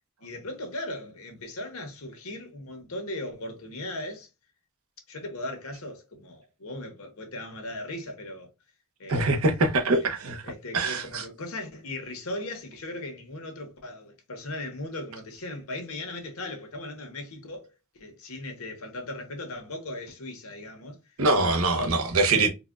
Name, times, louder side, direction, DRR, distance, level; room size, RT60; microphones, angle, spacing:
voice 1, 0.2-4.3 5.1-8.5 9.0-9.3 10.0-10.1 10.4-17.7 17.9-21.0 21.3-22.5, left 1 dB, 90° left, 1.1 m, -38 dB
voice 2, 9.1-10.4 10.7-11.2 21.2-22.5, right 2 dB, 80° right, 0.8 m, -23 dB
4.0 x 2.2 x 2.5 m
head